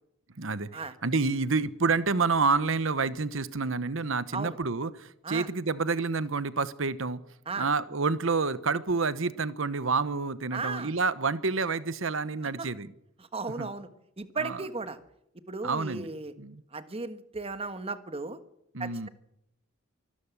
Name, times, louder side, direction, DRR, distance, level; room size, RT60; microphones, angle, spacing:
voice 1, 0.4-7.2 7.6-12.9 13.6-13.7 14.4-14.6 15.6-16.1 16.4-16.6 18.7-19.1, right 4 dB, 65° right, 15 dB, 1.1 m, -28 dB
voice 2, 10.5-10.9 12.6-12.7 13.2-13.9 14.2-15.0 15.5-16.3 16.7-18.4 18.8-19.1, right 3 dB, 30° right, 11 dB, 1.4 m, -35 dB
24.0 x 13.0 x 8.3 m, 0.79 s
head